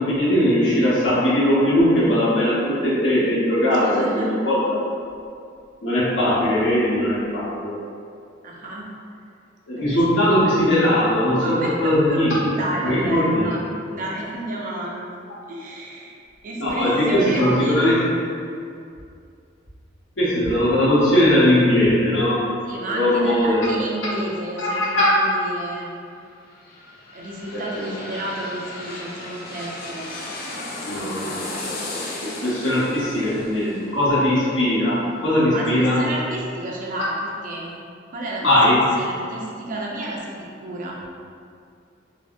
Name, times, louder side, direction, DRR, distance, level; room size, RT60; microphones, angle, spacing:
voice 1, 0.0-4.8 5.8-7.8 9.7-12.5 12.8-13.5 16.6-18.0 20.2-22.5 22.9-23.8 24.6-25.1 27.5-27.9 30.8-31.5 31.9-36.0 38.4-38.8, left 1 dB, 75° left, -9 dB, 1.0 m, -20 dB
voice 2, 3.8-4.3 8.4-8.9 9.8-10.1 11.4-12.2 12.5-13.6 13.9-15.0 15.5-16.2 16.4-17.8 22.6-25.9 27.1-30.1 35.5-37.8 38.1-38.6 39.0-41.0, right 1 dB, 45° right, -3 dB, 0.5 m, -31 dB
sound 1, 26.3-35.9 36.3-36.4, left 2 dB, 55° left, 0.4 m, -35 dB
3.2 x 2.2 x 2.6 m, 2.4 s
head